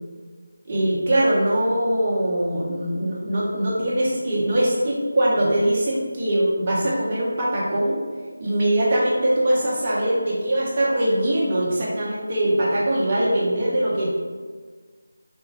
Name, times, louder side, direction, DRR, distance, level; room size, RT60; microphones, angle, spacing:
voice 1, 0.7-8.0 8.4-14.1, right 1 dB, 25° right, -7 dB, 0.8 m, -22 dB
3.4 x 2.1 x 3.3 m, 1.5 s
figure-of-eight pair, 160°, 0 cm